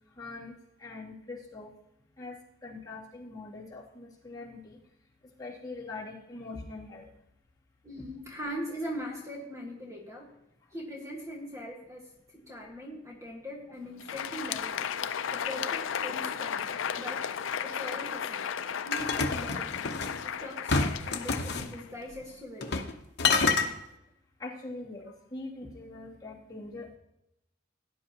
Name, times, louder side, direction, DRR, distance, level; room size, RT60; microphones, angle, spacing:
voice 1, 0.2-0.5 0.8-1.7 2.2-4.8 5.4-7.1 24.4-27.0, left 3 dB, 20° left, -7 dB, 2.5 m, -42 dB
voice 2, 7.8-10.3 10.7-14.9 15.3-17.3 17.6-18.5 18.8-19.9 20.2-22.8, equal, 15° right, -2 dB, 1.6 m, -41 dB
Crowd, 13.9-22.3, left 8 dB, 75° left, 0.5 m, -35 dB
sound 1, 18.9-20.2 20.7-21.7 22.6-22.9 23.2-23.7, left 4 dB, 60° left, 1.0 m, -27 dB
17.5 x 10.0 x 2.9 m, 0.87 s
head